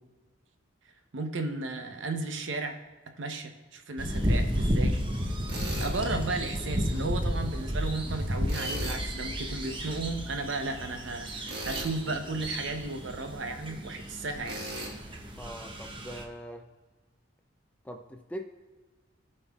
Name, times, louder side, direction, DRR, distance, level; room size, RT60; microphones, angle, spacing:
voice 1, 1.1-2.8 3.2-5.0 5.8-14.6, right 3 dB, 70° right, 6 dB, 0.8 m, -34 dB
sound 1, 4.0-16.2, equal, 25° right, 0.8 m, -32 dB
Tools, 5.5-6.0 8.5-9.0 11.4-12.0 14.4-14.9, right 1 dB, 55° right, 1.6 m, -37 dB
voice 2, 15.4-16.7 17.8-18.4, equal, 5° left, 5 dB, 0.4 m, -41 dB
16.0 x 5.4 x 2.3 m, 1.3 s
head